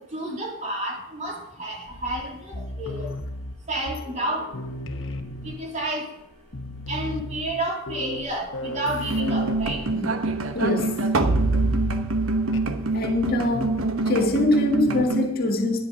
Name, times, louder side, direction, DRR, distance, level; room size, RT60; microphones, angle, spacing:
voice 1, 0.1-3.1 3.7-4.9 5.4-6.1 6.9-9.8, right 1 dB, 35° right, -1 dB, 2.9 m, -30 dB
sound 1, 1.9-4.3 4.5-5.8 6.2-6.3 6.5-10.6 10.9-11.2 12.5-12.8 13.5-13.9 14.9-15.3, left 1 dB, 65° left, 1.1 m, -36 dB
sound 2, 9.1-15.3, right 2 dB, 85° right, 1.0 m, -24 dB
voice 2, 10.5-11.0 12.9-13.8 14.1-15.8, left 1 dB, 45° left, 3 dB, 1.8 m, -23 dB
11.5 x 10.0 x 5.2 m, 0.84 s
head